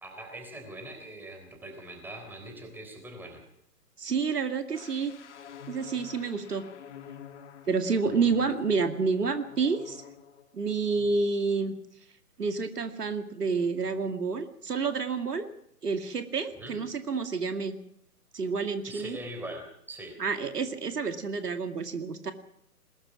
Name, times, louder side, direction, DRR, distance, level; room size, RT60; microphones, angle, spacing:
voice 1, 0.0-3.4 16.6-16.8 18.9-20.2, right 1 dB, 5° right, 4 dB, 3.6 m, -42 dB
voice 2, 4.0-5.1 5.7-6.6 7.7-10.0 10.5-11.7 12.4-15.5 15.8-17.8 18.3-19.2 20.2-22.3, right 4 dB, 75° right, 7 dB, 2.3 m, -29 dB
sound 1, 4.7-10.5 10.8-11.1, left 8 dB, 45° left, 2.2 m, -48 dB
21.0 x 20.5 x 6.1 m, 0.74 s
figure-of-eight pair, 145°, 48 cm